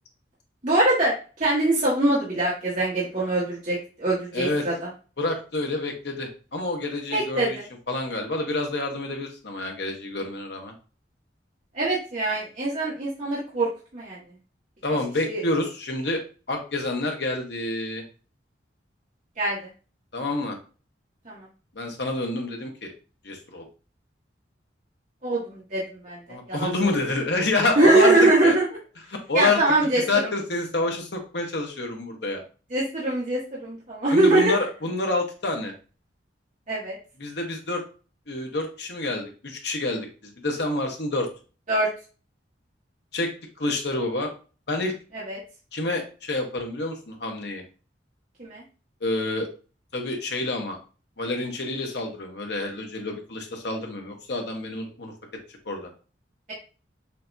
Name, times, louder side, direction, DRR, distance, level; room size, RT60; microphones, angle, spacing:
voice 1, 0.6-1.1 1.4-4.7 7.1-7.6 11.7-14.2 15.3-15.4 19.4-19.6 21.2-21.4 25.2-26.2 26.5-26.7 27.7-28.6 29.3-30.3 32.7-34.6 36.7-36.9 41.7-41.9 45.1-45.4 48.4-48.6, right 2 dB, 40° right, -7 dB, 1.5 m, -23 dB
voice 2, 4.3-4.7 5.2-7.6 7.9-10.7 14.8-16.2 16.5-18.0 20.1-20.6 21.7-22.9 23.2-23.6 26.3-28.5 29.1-29.8 30.1-32.4 34.1-35.7 37.2-37.8 38.3-41.3 43.1-43.3 43.6-44.3 44.7-44.9 45.7-47.6 49.0-49.5 49.9-50.8 51.2-55.1 55.7-55.9, left 2 dB, 60° left, 3 dB, 1.0 m, -28 dB
6.6 x 2.7 x 2.6 m, 0.35 s
head